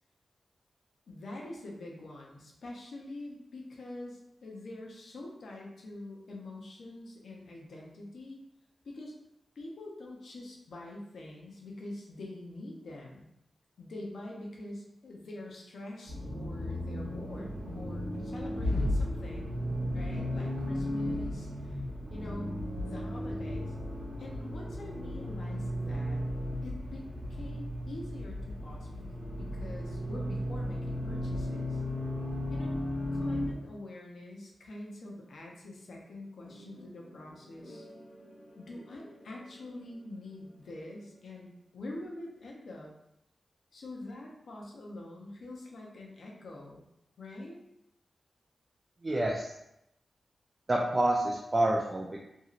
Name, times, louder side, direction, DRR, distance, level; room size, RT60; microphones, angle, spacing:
voice 1, 1.1-8.4 8.8-9.1 9.6-13.3 13.8-19.6 19.9-21.5 22.1-23.7 24.2-26.2 26.6-27.0 27.3-29.1 29.4-31.8 32.5-32.8 33.1-37.9 38.6-42.9 43.7-46.8 47.2-47.6, left 1 dB, 75° left, -2 dB, 0.6 m, -45 dB
Accelerating revving vroom, 16.1-33.5, left 1 dB, 85° right, 0.8 m, -35 dB
sound 1, 36.5-41.6, equal, 25° left, 0.9 m, -55 dB
voice 2, 49.0-49.5 50.7-52.2, right 1 dB, 25° right, -3 dB, 0.3 m, -28 dB
2.8 x 2.7 x 2.4 m, 0.82 s
wide cardioid pair, 140°, 0 cm